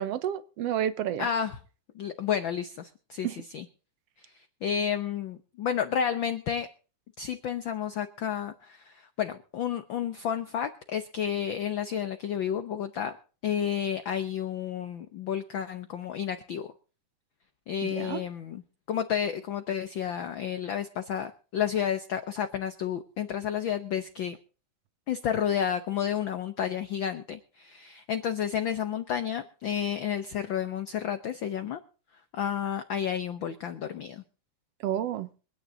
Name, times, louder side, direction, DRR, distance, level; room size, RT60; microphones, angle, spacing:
voice 1, 0.0-1.3 3.2-3.4 17.8-18.2 34.8-35.3, right 10 dB, 65° right, 15 dB, 1.7 m, -30 dB
voice 2, 1.2-1.6 1.9-3.6 4.2-6.7 7.2-13.2 13.4-16.7 17.7-18.6 18.9-24.4 25.1-31.8 32.3-34.2, left 8 dB, 75° left, 9 dB, 1.1 m, -31 dB
25.0 x 9.7 x 3.9 m, 0.38 s
omnidirectional pair, 3.4 m